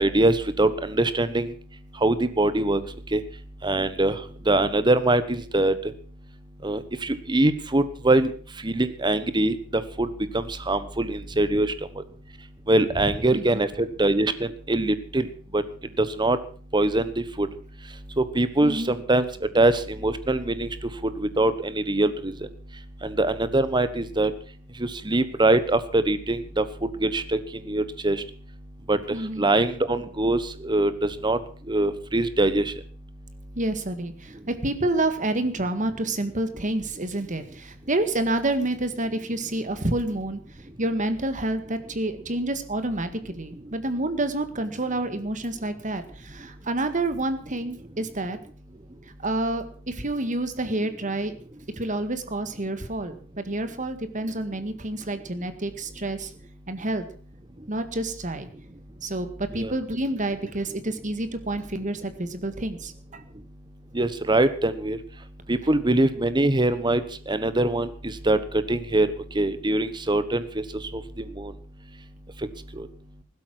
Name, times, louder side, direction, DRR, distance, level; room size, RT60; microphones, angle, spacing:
voice 1, 0.0-1.5 2.0-2.8 3.1-3.2 3.6-4.1 4.5-5.7 6.6-8.3 8.6-10.1 10.3-11.7 12.7-15.3 15.5-15.6 16.0-16.4 16.7-17.5 18.2-19.3 19.5-20.7 21.2-22.3 23.0-24.3 24.8-26.6 27.0-27.4 27.7-28.2 28.9-29.0 29.4-31.4 31.7-32.7 59.6-59.7 63.9-65.0 65.5-67.0 67.3-68.4 68.7-69.1 69.3-70.6 71.4-71.5 72.8-72.9, right 2 dB, 20° right, 13 dB, 1.2 m, -23 dB
voice 2, 18.6-19.0 29.1-29.5 33.6-40.4 40.8-48.4 49.2-51.3 51.8-56.3 56.7-57.0 57.7-58.5 59.0-63.2, right 2 dB, 40° right, 10 dB, 1.9 m, -28 dB
15.5 x 12.5 x 6.1 m, 0.43 s
head